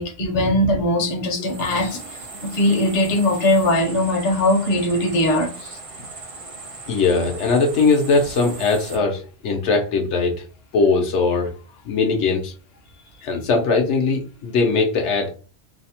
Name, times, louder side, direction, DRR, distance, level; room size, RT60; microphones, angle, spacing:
voice 1, 0.0-2.0 2.4-5.8, left 1 dB, 45° left, 0.6 m, -20 dB
sound 1, 1.4-9.0, right 3 dB, 45° right, 0.5 m, -38 dB
voice 2, 6.9-10.4 10.7-11.5 11.9-12.5 13.2-15.3, left 4 dB, 80° left, 0.9 m, -20 dB
2.7 x 2.0 x 2.7 m
omnidirectional pair, 1.2 m